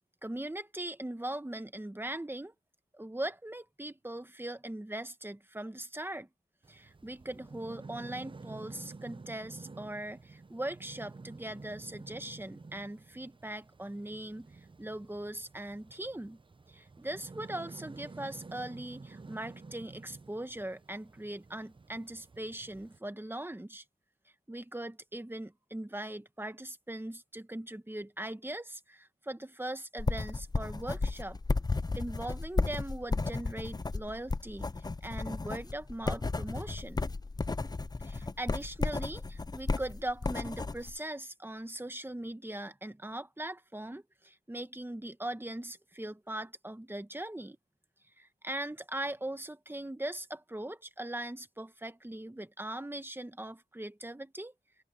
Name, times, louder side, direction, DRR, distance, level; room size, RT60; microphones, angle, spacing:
voice 1, 0.2-2.5 2.9-6.3 6.7-14.5 14.8-16.4 16.7-23.8 24.5-31.4 31.9-34.7 35.0-37.1 38.0-47.6 48.2-54.5, right 1 dB, 10° right, 1.3 m, -40 dB
sound 1, 6.6-23.0, right 3 dB, 30° right, 0.7 m, -50 dB
sound 2, 30.0-41.0, left 3 dB, 25° left, 0.6 m, -34 dB
open air
wide cardioid pair, 95°, 17 cm